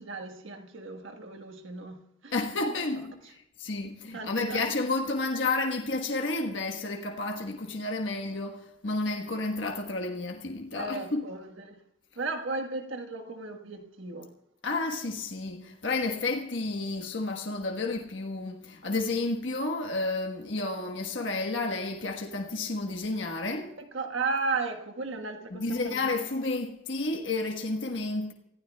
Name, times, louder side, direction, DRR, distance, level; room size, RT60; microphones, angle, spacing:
voice 1, 0.0-2.3 4.1-4.7 10.7-11.8 12.2-14.3 23.9-26.1, right 3 dB, 80° right, 1.4 m, -35 dB
voice 2, 2.3-11.3 14.6-23.8 25.5-28.3, left 3 dB, 70° left, 1.4 m, -31 dB
28.5 x 15.5 x 2.3 m
head